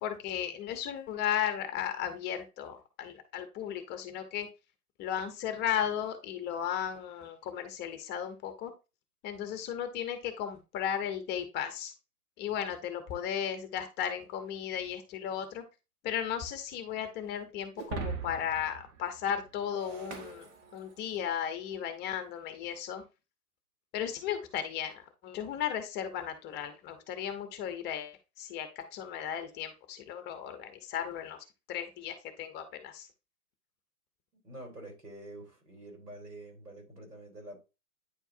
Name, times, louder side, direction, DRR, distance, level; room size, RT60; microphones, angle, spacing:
voice 1, 0.0-4.5 5.0-8.7 9.2-11.9 12.4-15.6 16.0-20.4 20.7-23.0 23.9-33.1, left 9 dB, 20° left, 1.0 m, -35 dB
Shatter, 17.8-21.3, right 5 dB, 45° right, 1.4 m, -41 dB
voice 2, 34.4-37.6, right 1 dB, 90° right, 3.7 m, -47 dB
9.4 x 4.5 x 2.7 m
hypercardioid pair, 120°, 46 cm